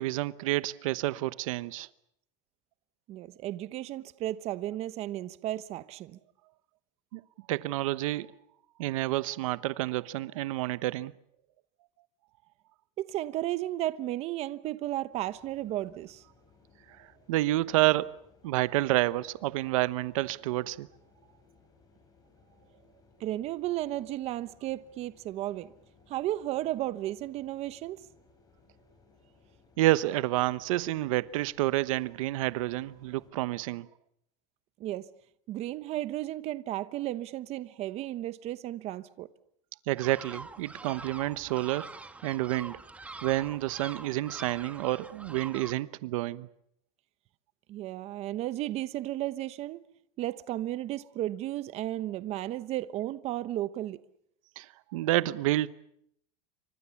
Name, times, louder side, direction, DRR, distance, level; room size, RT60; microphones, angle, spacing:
voice 1, 0.0-1.9 7.1-7.2 7.5-8.3 8.8-11.1 17.0-18.1 18.4-20.9 29.8-33.9 39.9-41.9 42.2-42.8 43.2-46.5 54.6-55.7, right 17 dB, 85° right, 1.0 m, -29 dB
voice 2, 3.1-6.2 13.0-16.2 23.2-25.7 26.1-28.0 34.8-35.1 35.5-39.3 47.7-49.8 50.2-54.0, right 14 dB, 40° right, 1.0 m, -34 dB
sound 1, 15.1-33.3, left 4 dB, 20° left, 7.5 m, -63 dB
sound 2, 40.0-45.7, right 3 dB, 10° right, 1.3 m, -45 dB
28.5 x 25.0 x 7.1 m
supercardioid pair, 150°, 17 cm